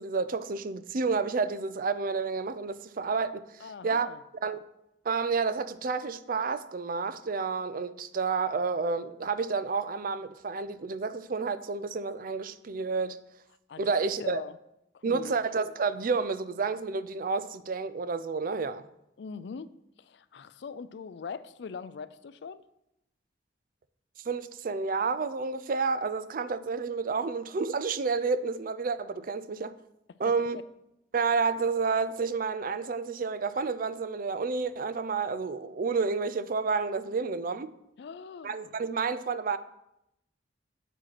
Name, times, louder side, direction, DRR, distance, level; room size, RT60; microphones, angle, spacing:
voice 1, 0.0-4.1 4.4-4.7 5.0-13.2 13.8-14.4 15.0-18.8 24.3-29.7 30.2-30.6 31.1-37.7 38.4-39.6, right 4 dB, 50° right, 0.5 m, -30 dB
voice 2, 3.6-4.2 13.7-13.8 14.2-14.6 14.9-15.4 19.2-19.7 20.0-22.6 38.0-38.7, left 5 dB, 70° left, 0.4 m, -41 dB
7.8 x 4.9 x 5.9 m
head